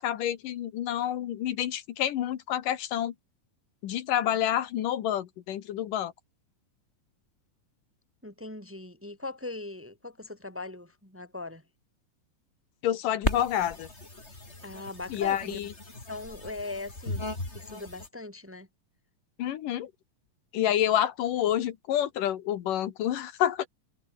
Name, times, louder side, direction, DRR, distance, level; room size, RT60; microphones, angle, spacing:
voice 1, 0.0-3.1 3.8-6.1 12.8-13.9 15.1-15.7 19.4-19.9 20.5-23.7, left 11 dB, 75° left, 2.9 m, -28 dB
voice 2, 8.2-11.6 14.6-15.6 16.1-17.2 17.5-18.7, left 2 dB, 5° right, 1.4 m, -40 dB
sound 1, 13.2-18.1, left 2 dB, 20° left, 4.7 m, -36 dB
omnidirectional pair, 3.9 m